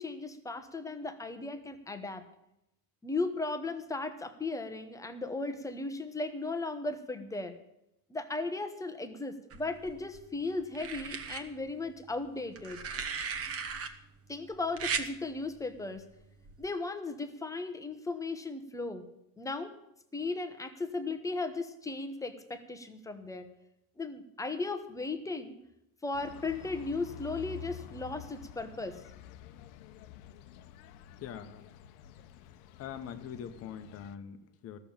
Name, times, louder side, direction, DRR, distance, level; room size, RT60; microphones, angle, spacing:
voice 1, 0.0-2.2 3.0-7.6 8.1-12.8 14.3-16.0 16.6-19.0 19.4-19.7 20.1-23.5 24.0-25.6 26.0-29.0, left 3 dB, 5° left, 8 dB, 0.9 m, -36 dB
sound 1, 9.5-10.2 10.7-11.4 12.6-13.9 14.8-15.1 16.4-16.7, right 6 dB, 30° right, 1.1 m, -36 dB
sound 2, 26.1-34.2, left 11 dB, 65° left, 1.0 m, -49 dB
voice 2, 31.2-31.6 32.8-34.8, left 8 dB, 30° left, 10 dB, 1.0 m, -43 dB
14.0 x 6.9 x 8.8 m, 0.83 s
supercardioid pair, 150°, 45 cm